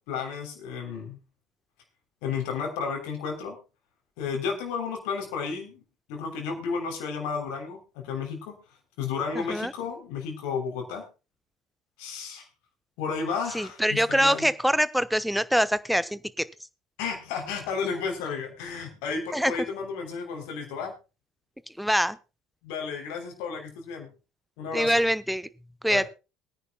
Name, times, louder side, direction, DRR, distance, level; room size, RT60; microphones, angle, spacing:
voice 1, 0.1-1.2 2.2-3.6 4.2-5.8 6.1-8.5 9.0-11.0 12.0-12.5 13.0-14.5 17.0-20.9 22.6-24.1 24.6-24.9 25.9-26.0, left 5 dB, 65° left, 3 dB, 3.3 m, -32 dB
voice 2, 9.3-9.7 13.5-16.2 19.3-19.5 21.8-22.2 24.7-25.5 25.8-26.1, equal, ahead, 16 dB, 0.9 m, -24 dB
22.5 x 10.0 x 2.2 m, 0.29 s
figure-of-eight pair, 60°, 0 cm